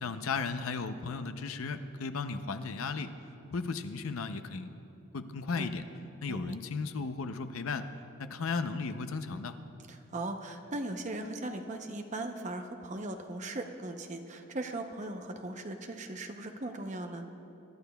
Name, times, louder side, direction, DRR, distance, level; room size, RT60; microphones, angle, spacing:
voice 1, 0.0-3.1 3.5-4.7 5.1-5.8 6.2-7.9 8.2-9.6, left 4 dB, 75° left, 9 dB, 0.6 m, -35 dB
voice 2, 6.3-6.6 9.9-17.3, right 2 dB, 35° right, 5 dB, 0.7 m, -38 dB
24.0 x 12.0 x 2.3 m, 2.8 s
head